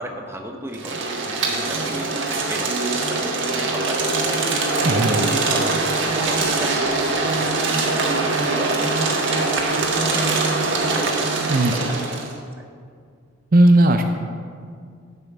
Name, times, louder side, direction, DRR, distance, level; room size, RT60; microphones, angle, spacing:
voice 1, 0.0-4.4 4.9-5.8 6.2-9.7 10.0-12.6, equal, 15° right, 3 dB, 0.9 m, -35 dB
sound 1, 0.7-12.3, right 3 dB, 70° right, 1.6 m, -22 dB
voice 2, 4.8-5.3 11.5-11.7 13.5-14.0, right 1 dB, 45° right, 5 dB, 0.6 m, -16 dB
12.0 x 5.7 x 7.3 m, 2.2 s
head